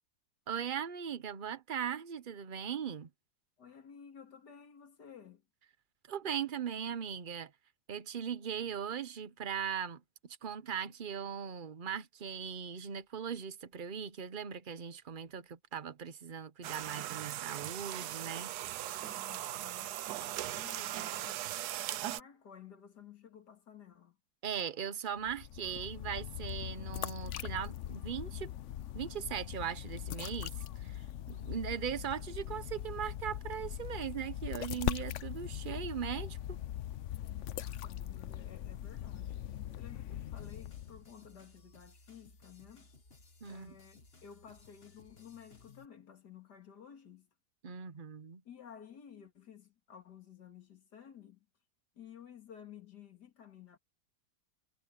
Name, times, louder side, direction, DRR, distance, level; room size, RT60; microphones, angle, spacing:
voice 1, 0.5-3.1 6.1-7.5 7.9-18.5 24.4-28.5 28.9-36.6 43.4-43.7 47.6-48.4, right 8 dB, 40° right, 0.9 m, -39 dB
voice 2, 3.6-5.4 19.0-20.0 20.5-24.2 37.6-39.4 39.7-42.9 43.5-47.3 48.4-51.5 51.9-53.8, left 8 dB, 85° left, 2.8 m, -54 dB
sound 1, 16.6-22.2, right 14 dB, 75° right, 1.2 m, -39 dB
sound 2, 25.2-41.1, left 11 dB, 60° left, 0.8 m, -41 dB
sound 3, 40.4-45.9, left 3 dB, 35° left, 2.1 m, -60 dB
omnidirectional pair, 1.7 m